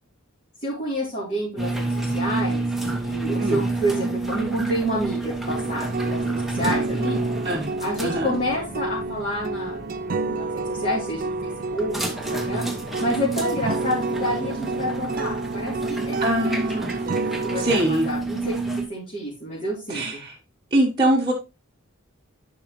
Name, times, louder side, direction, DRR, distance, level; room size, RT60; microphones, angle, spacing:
voice 1, 0.6-7.2 7.8-12.6 13.0-16.8 17.4-18.6 18.9-20.2, equal, 35° left, -7 dB, 3.5 m, -29 dB
sound 1, 1.6-18.9, right 2 dB, ahead, 1.1 m, -29 dB
sound 2, 5.5-17.8, right 3 dB, 45° right, 0.5 m, -30 dB
voice 2, 8.0-8.3 16.2-17.0 17.6-18.1 19.9-20.3 20.7-21.3, right 1 dB, 20° right, -5 dB, 1.3 m, -23 dB
11.0 x 5.4 x 3.1 m, 0.28 s
head